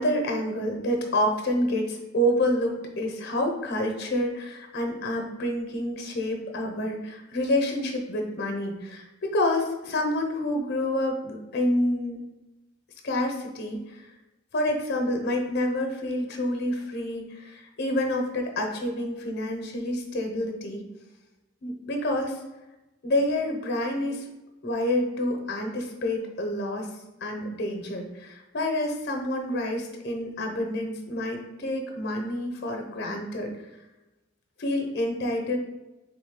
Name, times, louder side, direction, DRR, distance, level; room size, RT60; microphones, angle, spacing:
voice 1, 0.0-12.2 13.0-14.0 14.5-20.8 21.6-22.4 23.0-24.2 24.6-26.9 27.2-33.5 34.6-35.6, left 1 dB, 55° left, 3 dB, 0.7 m, -28 dB
3.5 x 3.1 x 3.6 m, 1.0 s
head